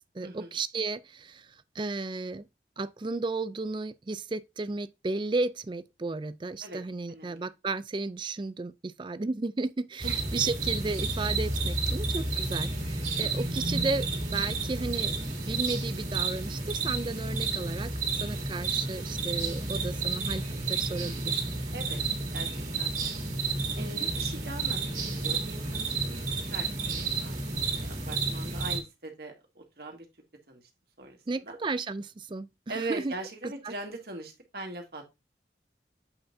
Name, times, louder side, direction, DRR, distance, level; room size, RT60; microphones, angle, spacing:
voice 1, 0.1-2.4 2.8-15.1 15.4-17.9 18.2-21.4 23.8-24.1 31.3-33.1 33.4-33.7, right 3 dB, 25° right, 0.4 m, -34 dB
voice 2, 7.1-7.5 10.0-10.2 13.1-13.4 21.7-22.0 22.3-23.1 23.7-26.2 26.5-30.1 30.5-30.6 31.0-31.6 32.7-35.1, right 2 dB, 60° right, 2.1 m, -41 dB
sound 1, 10.0-28.8, right 3 dB, 45° right, 2.5 m, -31 dB
7.9 x 5.5 x 2.7 m
head